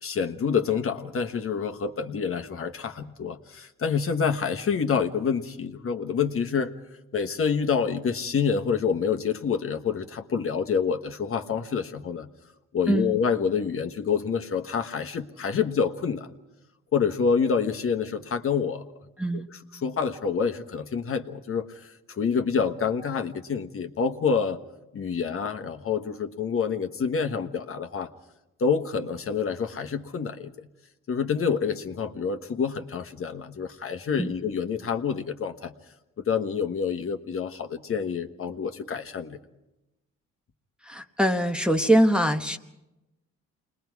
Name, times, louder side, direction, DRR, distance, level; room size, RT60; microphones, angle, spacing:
voice 1, 0.0-6.7 7.1-12.3 12.7-16.3 16.9-18.8 19.3-24.6 24.9-28.1 28.6-30.7 31.1-35.7 36.3-39.4, left 6 dB, 45° left, 5 dB, 1.3 m, -27 dB
voice 2, 40.9-42.6, right 1 dB, 5° right, 3 dB, 1.1 m, -23 dB
28.0 x 20.5 x 4.7 m, 0.96 s
cardioid pair, 90°, 30 cm